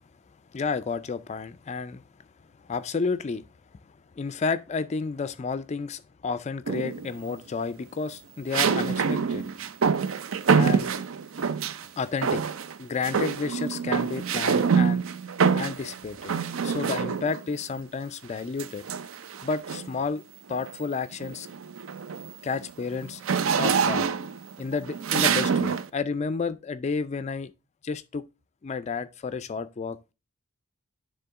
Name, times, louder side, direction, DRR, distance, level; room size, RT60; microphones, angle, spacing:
voice 1, 0.5-2.0 2.6-3.4 4.2-9.4 10.5-10.9 12.0-12.4 12.8-15.0 15.5-16.3 16.6-18.8 19.4-20.2 20.5-21.5 22.4-23.2 23.6-24.1 24.6-27.5 27.8-28.2 28.6-30.1, left 4 dB, 30° left, 0.3 m, -31 dB
sound 1, 6.7-7.2 8.5-11.9 12.2-12.8 13.0-17.5 18.6-20.0 20.5-20.8 21.1-25.9, right 6 dB, 65° right, 0.5 m, -26 dB
9.7 x 3.7 x 3.6 m
head